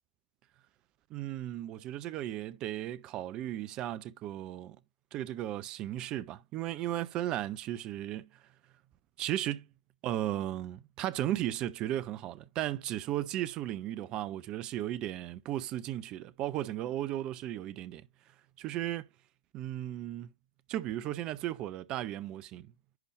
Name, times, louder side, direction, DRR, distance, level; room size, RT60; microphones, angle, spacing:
voice 1, 1.1-4.8 5.1-8.4 9.2-9.7 10.0-18.1 18.6-19.1 19.5-20.3 20.7-22.7, right 13 dB, 25° right, 0.6 m, -35 dB
11.0 x 4.0 x 3.1 m
figure-of-eight pair, 115°, 3 cm